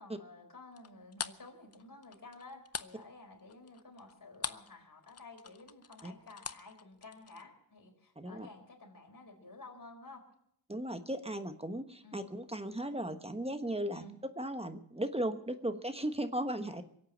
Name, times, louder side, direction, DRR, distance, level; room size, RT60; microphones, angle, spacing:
voice 1, 0.0-10.2 12.0-12.2 13.9-14.1, left 2 dB, 55° left, 1 dB, 4.4 m, -52 dB
sound 1, 0.8-4.8 5.0-7.4, left 6 dB, 40° left, 0.7 m, -43 dB
voice 2, 8.2-8.5 10.7-16.8, right 1 dB, 15° right, 9 dB, 1.2 m, -36 dB
23.0 x 8.4 x 7.3 m, 0.73 s
cardioid pair, 65°, 39 cm